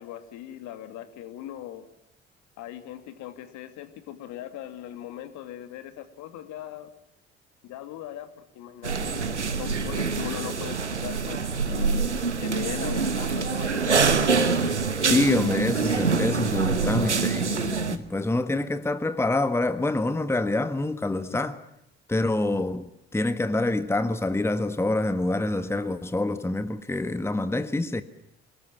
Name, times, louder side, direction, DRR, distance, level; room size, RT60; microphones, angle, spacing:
voice 1, 0.0-1.9 2.6-6.9 7.6-9.2 9.6-12.1 12.4-14.2 21.3-21.4, left 12 dB, 55° left, 2.5 m, -39 dB
sound 1, 8.8-18.0, right 5 dB, 85° right, 1.1 m, -25 dB
voice 2, 15.0-21.6 22.1-22.9 23.1-28.0, left 2 dB, 5° left, 1.4 m, -26 dB
27.5 x 20.0 x 7.3 m
figure-of-eight pair, 55°, 34 cm